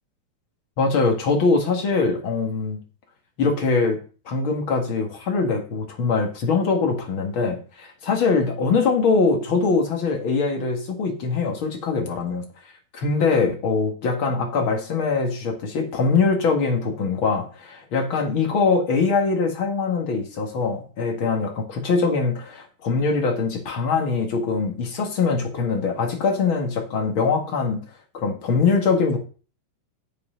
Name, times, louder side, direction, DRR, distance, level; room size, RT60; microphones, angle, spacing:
voice 1, 0.8-2.8 3.4-4.0 4.2-12.4 12.9-27.8 28.1-29.2, left 4 dB, 45° left, 3 dB, 1.7 m, -22 dB
8.3 x 7.9 x 5.0 m, 0.37 s
omnidirectional pair, 4.4 m